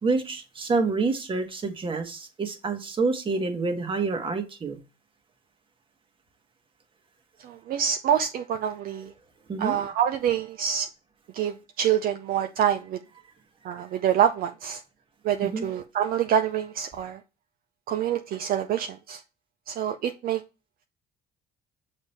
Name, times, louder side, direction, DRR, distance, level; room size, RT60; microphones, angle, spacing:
voice 1, 0.0-4.8 9.5-9.7 15.4-15.6, right 4 dB, 30° right, 1.3 m, -27 dB
voice 2, 7.4-9.1 9.6-10.9 11.3-13.0 13.6-14.8 15.2-17.2 17.9-19.2 19.7-20.4, right 9 dB, 60° right, 0.5 m, -26 dB
6.4 x 3.5 x 4.2 m
cardioid pair, 110°, 17 cm